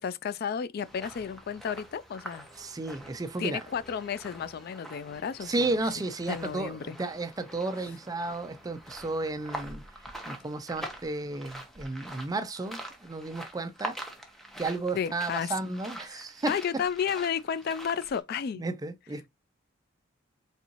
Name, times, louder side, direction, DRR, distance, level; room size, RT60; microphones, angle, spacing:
voice 1, 0.0-2.5 3.4-5.7 6.3-7.0 14.9-15.6 16.1-18.6, left 7 dB, 55° left, 0.3 m, -32 dB
sound 1, 0.8-18.2, right 1 dB, ahead, 0.8 m, -45 dB
voice 2, 2.6-3.6 5.4-9.9 10.3-14.0 14.6-16.6 18.6-19.3, right 2 dB, 20° right, 0.4 m, -33 dB
4.1 x 3.5 x 2.9 m
head